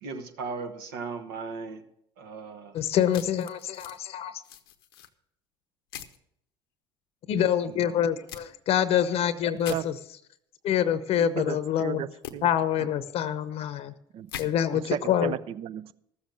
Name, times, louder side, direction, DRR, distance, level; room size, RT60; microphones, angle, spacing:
voice 1, 0.0-1.8 2.2-2.8 7.7-8.1, right 4 dB, 80° right, 6 dB, 1.5 m, -37 dB
voice 2, 2.7-4.4 7.3-9.9 10.6-12.0 12.4-13.9 14.4-15.3, left 9 dB, 55° left, 13 dB, 0.8 m, -26 dB
sound 1, 3.1-4.0 4.4-5.1 5.9-6.2 8.3-8.4 9.6-9.8 12.2-12.3 14.3-14.5, left 10 dB, 90° left, 0.8 m, -41 dB
voice 3, 11.4-12.5 14.1-14.3 14.7-15.9, right 11 dB, 55° right, 17 dB, 0.5 m, -34 dB
14.0 x 7.2 x 6.5 m, 0.72 s
hypercardioid pair, 70°, 12 cm